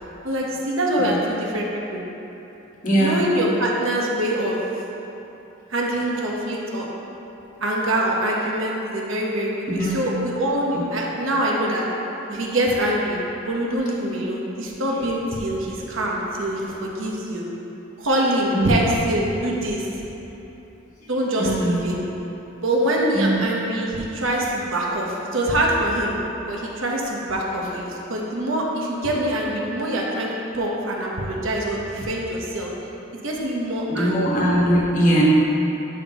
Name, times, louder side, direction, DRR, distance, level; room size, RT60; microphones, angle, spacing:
voice 1, 0.2-2.0 3.0-4.6 5.7-6.9 7.6-11.8 12.3-17.4 18.0-19.9 21.1-22.0 22.6-26.2 26.5-32.7 33.2-34.2, right 1 dB, 85° right, -3 dB, 1.1 m, -24 dB
voice 2, 2.8-3.3 9.8-10.0 10.7-10.8 14.9-15.1 18.5-18.7 21.4-21.8 23.1-23.4 33.9-35.2, right 1 dB, 40° left, -5 dB, 1.4 m, -21 dB
11.0 x 5.6 x 3.0 m, 3.0 s
head